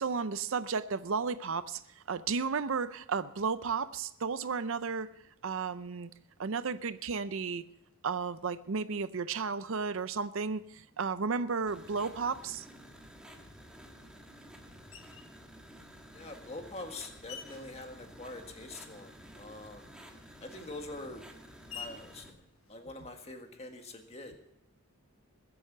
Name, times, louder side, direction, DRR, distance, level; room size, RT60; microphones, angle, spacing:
voice 1, 0.0-5.1 5.4-6.1 6.4-7.6 8.0-12.7, right 5 dB, 60° right, 14 dB, 0.5 m, -33 dB
sound 1, 11.7-22.3, equal, 5° right, 1.5 m, -52 dB
Screech, 14.9-15.4 16.1-18.8 19.1-23.4, left 7 dB, 65° left, 1.5 m, -52 dB
voice 2, 16.1-19.9 20.4-21.2 21.7-22.4 22.7-24.4, left 2 dB, 30° left, 4 dB, 1.7 m, -44 dB
21.5 x 7.8 x 6.8 m, 0.83 s
head